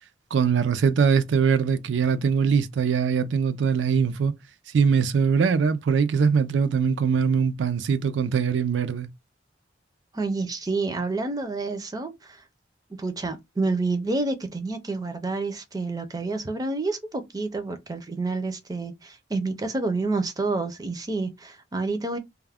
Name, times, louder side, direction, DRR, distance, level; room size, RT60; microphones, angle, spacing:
voice 1, 0.3-4.3 4.7-9.1, right 6 dB, 85° right, 0.4 m, -22 dB
voice 2, 10.1-12.4 13.0-22.2, right 3 dB, 20° right, 0.4 m, -29 dB
2.3 x 2.1 x 3.3 m
head